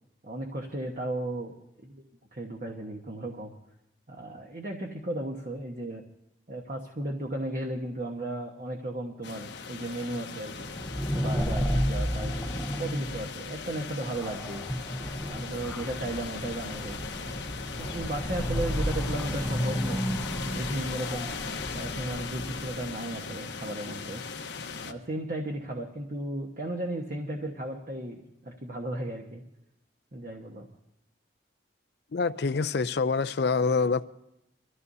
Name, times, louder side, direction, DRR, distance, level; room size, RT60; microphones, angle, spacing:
voice 1, 0.2-1.5 1.8-2.0 2.3-3.5 4.1-6.0 6.5-10.7 11.1-14.6 15.2-17.0 17.8-20.1 20.4-24.2 24.8-29.4 30.1-30.7, right 1 dB, 45° right, 1.3 m, -35 dB
sound 1, 9.2-24.9, left 5 dB, 85° left, 1.0 m, -39 dB
sound 2, 10.6-23.2, equal, 5° left, 0.7 m, -32 dB
voice 2, 32.1-34.0, left 4 dB, 65° left, 0.5 m, -26 dB
24.0 x 14.5 x 2.7 m
head